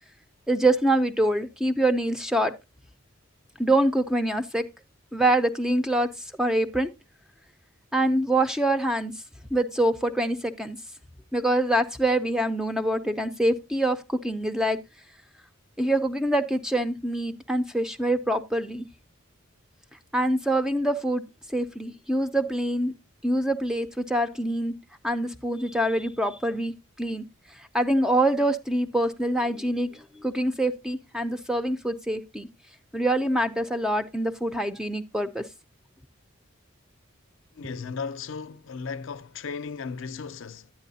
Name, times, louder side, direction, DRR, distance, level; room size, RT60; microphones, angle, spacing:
voice 1, 0.5-2.5 3.6-4.6 5.1-6.9 7.9-9.1 9.5-10.8 11.3-14.8 15.8-18.9 20.1-21.2 21.5-22.9 23.2-24.7 25.0-26.7 27.0-27.2 27.6-32.5 32.9-35.4, right 1 dB, 5° right, 0.4 m, -25 dB
voice 2, 37.5-40.7, left 5 dB, 60° left, 0.5 m, -36 dB
9.9 x 9.0 x 2.7 m
head